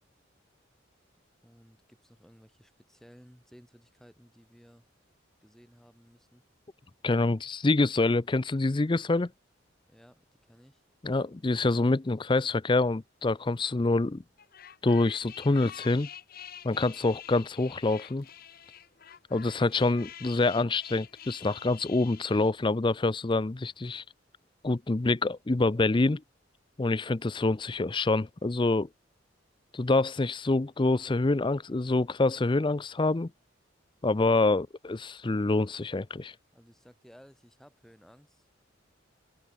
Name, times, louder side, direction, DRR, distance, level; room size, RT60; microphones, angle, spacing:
voice 1, 1.4-4.9 5.4-6.4 9.9-10.8 36.5-38.5, equal, ahead, 7.0 m, -57 dB
voice 2, 7.0-9.3 11.0-14.2 14.8-16.1 16.6-18.3 19.3-24.0 24.6-26.2 26.8-28.9 29.7-33.3 34.0-36.3, left 2 dB, 25° left, 0.5 m, -26 dB
sound 1, 14.4-22.5, left 10 dB, 50° left, 1.0 m, -47 dB
head